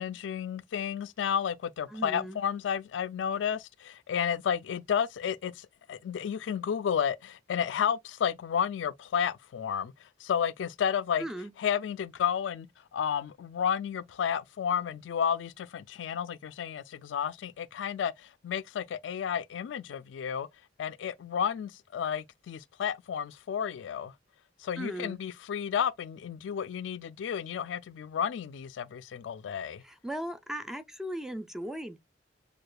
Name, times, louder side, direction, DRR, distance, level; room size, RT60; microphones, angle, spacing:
voice 1, 0.0-9.9 10.2-11.2 11.6-20.5 20.8-24.1 24.6-29.8, left 8 dB, 90° left, 0.3 m, -32 dB
voice 2, 1.9-2.4 11.2-11.5 24.8-25.2 29.8-32.0, right 1 dB, 5° right, 0.4 m, -37 dB
6.5 x 2.4 x 2.2 m
head